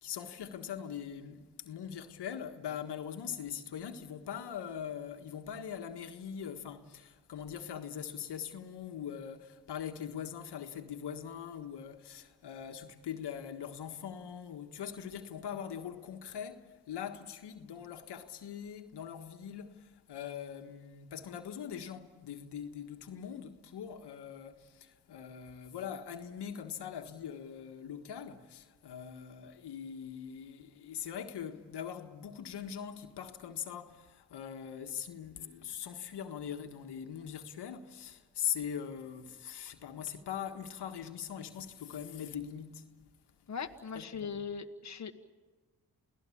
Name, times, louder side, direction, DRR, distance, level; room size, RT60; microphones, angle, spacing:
voice 1, 0.0-43.1 43.9-44.5, left 8 dB, 80° left, 1.7 m, -42 dB
voice 2, 43.5-45.1, left 6 dB, 45° left, 1.5 m, -39 dB
28.5 x 18.0 x 8.6 m
cardioid pair, 65°, 40 cm